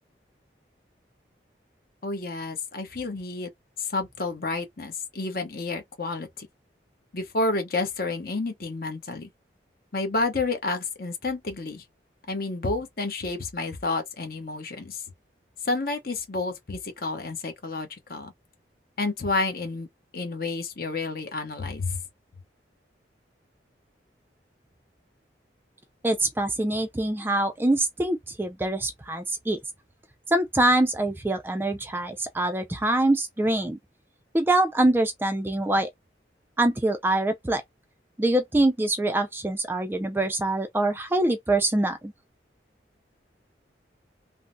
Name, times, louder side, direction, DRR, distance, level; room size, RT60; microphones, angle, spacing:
voice 1, 2.0-3.5 3.8-6.5 7.1-9.3 9.9-11.8 12.3-15.0 15.6-18.3 19.0-19.9 20.1-22.0, left 3 dB, 55° left, 0.9 m, -30 dB
voice 2, 26.0-29.6 30.3-33.8 34.3-35.9 36.6-37.6 38.2-42.1, right 1 dB, 10° right, 0.3 m, -24 dB
3.5 x 2.0 x 2.5 m
head